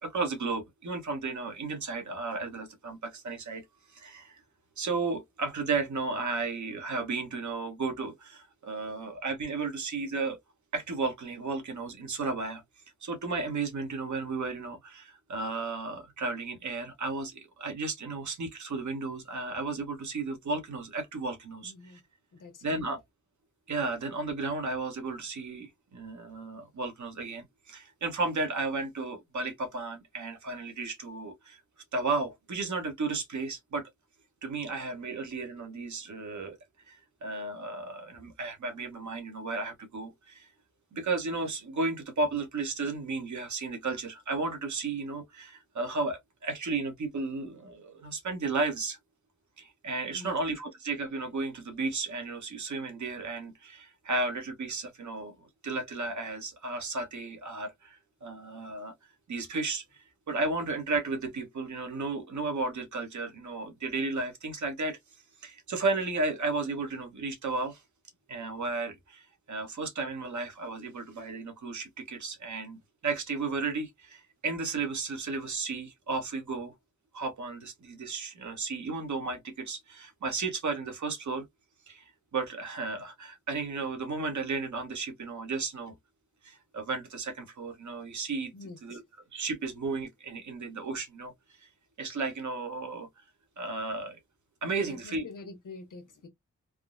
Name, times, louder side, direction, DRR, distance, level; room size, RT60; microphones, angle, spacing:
voice 1, 0.0-4.4 4.8-10.4 10.7-12.6 13.0-22.0 22.6-23.0 23.7-31.6 31.9-33.9 34.4-36.6 36.9-40.5 40.9-49.0 49.6-58.9 59.3-65.0 65.4-67.8 68.3-76.7 77.1-81.4 81.9-86.0 86.4-88.5 88.8-89.0 89.3-91.3 91.6-91.7 92.0-93.1 93.6-94.2 94.6-95.3, right 3 dB, 65° right, 1.0 m, -34 dB
voice 2, 21.6-22.0 22.3-22.9 50.1-50.4 88.5-89.0 94.8-96.3, left 3 dB, 80° left, 1.0 m, -46 dB
3.5 x 2.0 x 2.4 m
wide cardioid pair, 135°, 31 cm